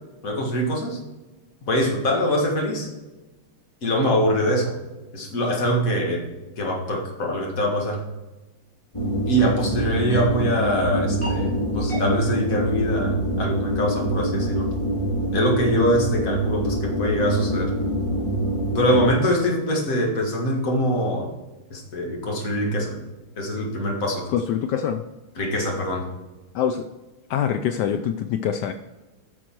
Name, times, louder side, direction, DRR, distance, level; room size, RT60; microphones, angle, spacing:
voice 1, 0.2-1.0 1.7-2.9 3.8-4.7 5.1-8.1 9.3-14.7 15.3-17.7 18.7-21.3 21.7-23.0 23.4-24.3 25.4-26.1, equal, 40° left, 0 dB, 2.1 m, -23 dB
sound 1, 8.9-19.1, right 1 dB, 15° left, 2.2 m, -25 dB
voice 2, 24.3-25.0 26.5-26.9 27.3-28.7, left 8 dB, 85° left, 9 dB, 0.9 m, -24 dB
9.8 x 6.3 x 4.6 m, 1.1 s
omnidirectional pair, 2.4 m